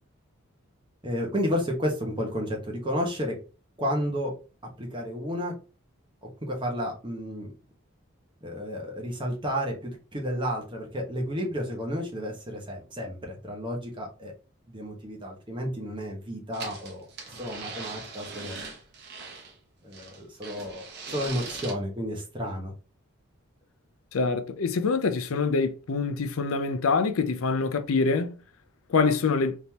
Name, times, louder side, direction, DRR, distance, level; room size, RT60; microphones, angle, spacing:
voice 1, 1.0-3.4 3.8-4.3 4.8-5.5 6.2-7.5 8.4-14.3 14.7-17.1 17.4-18.6 19.8-22.7, equal, 20° right, 1.2 m, -32 dB
sound 1, 16.5-19.5 19.9-21.7, right 4 dB, 50° right, 1.0 m, -40 dB
voice 2, 24.1-28.4 28.9-29.6, left 4 dB, 75° left, 0.5 m, -25 dB
4.0 x 3.5 x 2.9 m
head